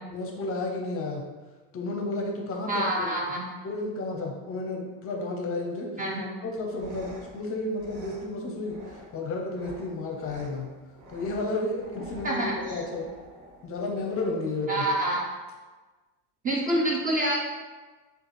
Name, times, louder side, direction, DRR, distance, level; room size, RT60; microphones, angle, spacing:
voice 1, 0.1-1.3 1.7-3.1 3.6-5.9 6.4-8.8 9.1-10.7 11.1-13.1 13.6-14.9, left 2 dB, 35° left, 1 dB, 0.6 m, -32 dB
voice 2, 2.7-3.4 6.0-6.3 12.2-12.8 14.7-15.2 16.4-17.4, right 1 dB, 20° right, -2 dB, 0.5 m, -27 dB
sound 1, 6.5-14.5, equal, 65° right, 1.3 m, -48 dB
4.7 x 2.5 x 3.2 m, 1.3 s
supercardioid pair, 120°, 41 cm